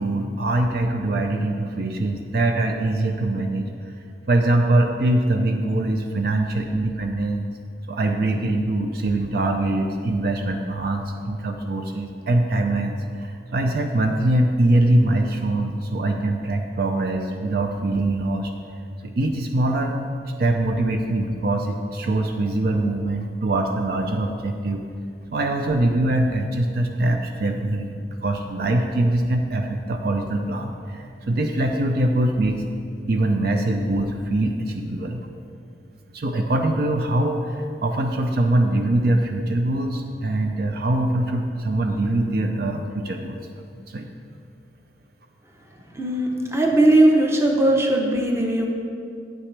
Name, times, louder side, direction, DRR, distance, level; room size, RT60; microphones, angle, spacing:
voice 1, 0.0-3.7 4.3-7.5 7.9-18.5 19.0-20.0 20.4-24.8 25.3-32.6 33.1-35.2 36.1-43.4 43.9-44.1, right 1 dB, 60° right, 4 dB, 0.5 m, -23 dB
voice 2, 45.9-48.7, right 1 dB, 15° right, 1 dB, 0.8 m, -18 dB
8.8 x 8.2 x 3.3 m, 2.4 s
head